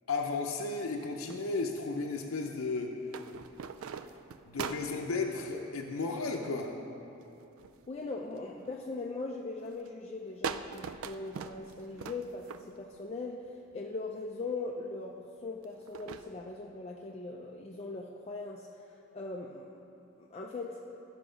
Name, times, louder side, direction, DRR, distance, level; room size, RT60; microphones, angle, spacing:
voice 1, 0.1-3.0 4.5-6.7, left 3 dB, 80° left, 1 dB, 0.6 m, -34 dB
sound 1, 1.3-2.2 3.1-5.1 7.2-7.9 8.3-8.7 9.3-9.5 9.9-10.0 10.4-12.9 13.7-13.8 15.6-16.3, right 6 dB, 80° right, 0.4 m, -41 dB
voice 2, 7.9-18.7 19.1-19.8 20.2-21.0, left 3 dB, 30° left, 0 dB, 0.4 m, -40 dB
13.0 x 5.9 x 5.1 m, 2.8 s
head